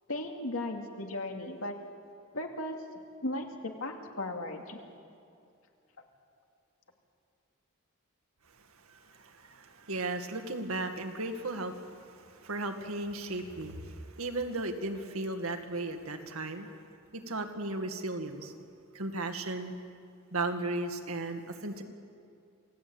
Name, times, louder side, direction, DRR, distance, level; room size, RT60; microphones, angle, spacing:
voice 1, 0.1-1.7 2.3-2.8 3.2-4.8, left 1 dB, 70° left, 2 dB, 2.7 m, -36 dB
voice 2, 9.2-16.8 17.1-18.6 18.9-19.7 20.3-21.8, right 2 dB, 75° right, 6 dB, 2.1 m, -35 dB
28.0 x 17.5 x 8.9 m, 2.5 s
head